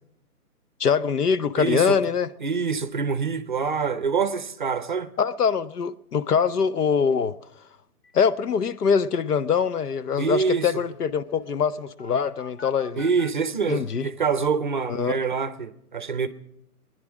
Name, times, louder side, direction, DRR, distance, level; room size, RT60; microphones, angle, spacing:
voice 1, 0.8-2.3 5.2-7.4 8.1-13.0 13.7-14.1 14.9-15.2, left 6 dB, 85° left, 0.9 m, -23 dB
voice 2, 1.6-2.0 2.4-5.1 10.2-10.7 13.0-16.3, right 5 dB, 35° right, 0.6 m, -25 dB
sound 1, 8.0-8.1 8.4-8.5 8.7-13.3, left 2 dB, 45° left, 1.3 m, -48 dB
21.5 x 10.5 x 6.1 m
hypercardioid pair, 165°, 45 cm